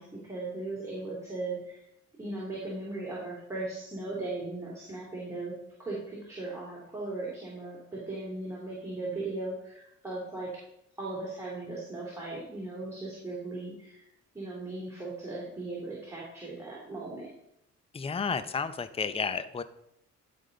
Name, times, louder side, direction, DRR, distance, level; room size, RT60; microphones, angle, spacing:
voice 1, 0.0-1.9 2.2-5.5 5.8-10.6 11.0-14.1 14.3-17.3, right 2 dB, 10° right, -6 dB, 2.7 m, -38 dB
voice 2, 17.9-19.6, left 5 dB, 20° left, 12 dB, 0.5 m, -32 dB
11.0 x 5.3 x 3.8 m, 0.80 s
cardioid pair, 90°, 30 cm